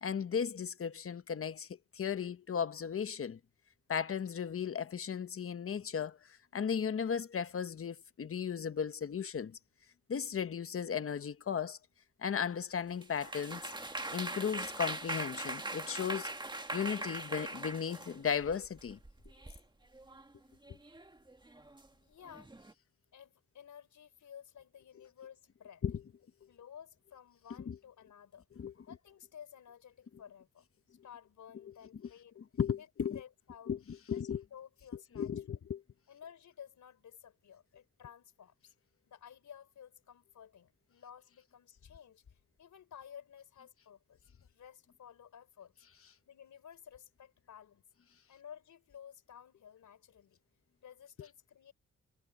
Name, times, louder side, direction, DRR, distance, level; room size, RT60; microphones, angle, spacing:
voice 1, 0.0-3.4 3.9-9.6 10.1-11.8 12.2-13.7 14.1-16.3 16.7-19.0 25.8-26.0 27.7-27.8 28.6-28.7 32.4-33.2 33.7-34.4 35.1-35.8, left 7 dB, 50° left, 1.0 m, -36 dB
sound 1, 13.0-19.6 19.9-20.3 20.6-21.9 22.2-22.7, right 2 dB, 15° right, 1.9 m, -41 dB
voice 2, 22.1-22.5 23.1-25.8 26.5-28.4 28.9-30.6 31.0-32.4 32.8-33.7 34.1-35.6 36.1-38.7 39.1-45.7 46.3-47.8 48.3-50.4 50.8-51.7, left 8 dB, 90° left, 4.7 m, -54 dB
cardioid pair, 90°, 29 cm